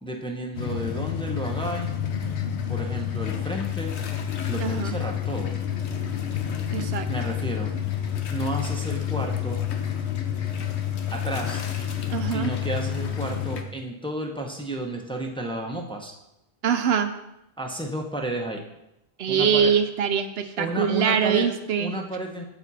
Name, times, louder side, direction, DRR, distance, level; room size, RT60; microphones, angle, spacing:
voice 1, 0.0-1.9 2.7-3.9 4.5-5.6 7.0-7.7 8.3-9.6 11.1-11.6 12.3-16.1 17.6-18.6 19.3-19.7 20.6-21.5 21.8-22.4, right 1 dB, 5° left, 1 dB, 0.8 m, -32 dB
sound 1, 0.5-13.6, left 9 dB, 85° left, 1.1 m, -29 dB
voice 2, 4.6-4.9 6.7-7.1 12.1-12.5 16.6-17.1 19.2-21.9, right 7 dB, 75° right, 9 dB, 0.8 m, -23 dB
7.4 x 7.1 x 4.1 m, 0.87 s
omnidirectional pair, 1.1 m